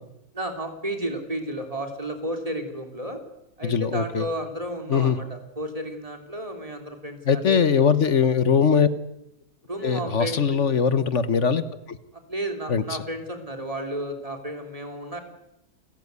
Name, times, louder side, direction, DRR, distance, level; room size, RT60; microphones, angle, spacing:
voice 1, 0.3-3.2 3.6-7.6 9.6-10.6 12.1-15.2, right 1 dB, 20° right, 5 dB, 3.4 m, -32 dB
voice 2, 3.6-4.2 4.9-5.2 7.3-8.9 9.8-11.6 11.9-12.0 12.7-12.8, left 6 dB, 55° left, 13 dB, 1.4 m, -21 dB
29.5 x 14.0 x 9.6 m, 0.83 s
omnidirectional pair, 1.6 m